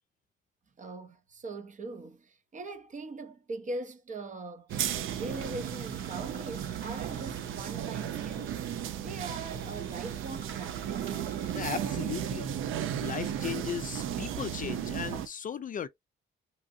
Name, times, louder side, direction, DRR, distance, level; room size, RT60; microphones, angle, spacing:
voice 1, 0.8-4.7 5.2-8.6 9.0-11.3, right 2 dB, 35° right, 0.7 m, -41 dB
sound 1, 4.7-11.8, right 5 dB, 55° right, 1.8 m, -52 dB
sound 2, 4.7-15.3, right 9 dB, 70° right, 0.5 m, -35 dB
voice 2, 11.5-12.5 13.0-15.9, left 8 dB, 40° left, 0.4 m, -36 dB
2.8 x 2.5 x 2.6 m
cardioid pair, 90°, 21 cm